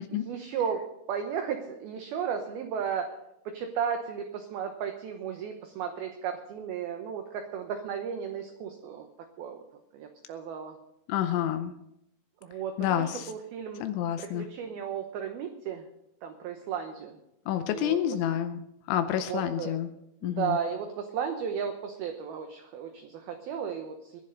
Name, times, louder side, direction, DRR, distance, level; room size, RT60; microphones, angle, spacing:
voice 1, 0.2-3.1 3.5-9.1 9.4-9.6 9.9-10.8 12.4-13.9 14.2-15.8 16.2-17.2 17.7-18.2 19.2-19.8 20.2-24.2, right 7 dB, 70° right, 5 dB, 2.5 m, -34 dB
voice 2, 11.1-11.7 12.8-13.3 13.8-14.5 17.5-18.6 18.9-19.9 20.2-20.6, left 11 dB, 85° left, 8 dB, 3.1 m, -28 dB
23.0 x 11.0 x 3.9 m, 0.80 s
omnidirectional pair, 5.3 m